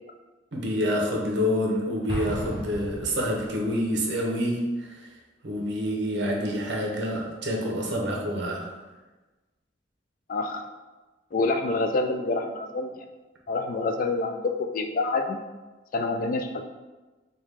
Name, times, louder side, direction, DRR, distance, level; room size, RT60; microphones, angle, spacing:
voice 1, 0.5-5.1 5.4-8.7, equal, 65° right, -1 dB, 0.8 m, -27 dB
Explosion, 2.1-3.8, left 1 dB, 75° left, 1.0 m, -35 dB
voice 2, 10.3-10.7 11.3-13.0 13.5-15.4 15.9-16.6, left 3 dB, 45° left, 6 dB, 0.3 m, -27 dB
4.7 x 2.2 x 3.4 m, 1.2 s
head